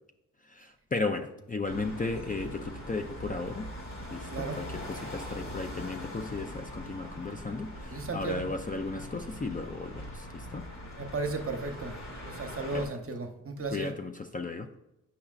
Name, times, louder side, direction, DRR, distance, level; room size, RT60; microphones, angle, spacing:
voice 1, 0.5-3.7 4.1-10.7 12.7-12.9 13.7-14.7, left 3 dB, 25° left, 6 dB, 0.4 m, -35 dB
sound 1, 1.6-12.9, equal, 60° left, 2.1 m, -42 dB
voice 2, 4.3-4.6 7.9-8.5 11.0-11.9 12.2-13.9, right 3 dB, 45° right, 5 dB, 0.8 m, -35 dB
8.4 x 5.8 x 2.4 m, 0.89 s
wide cardioid pair, 90°, 32 cm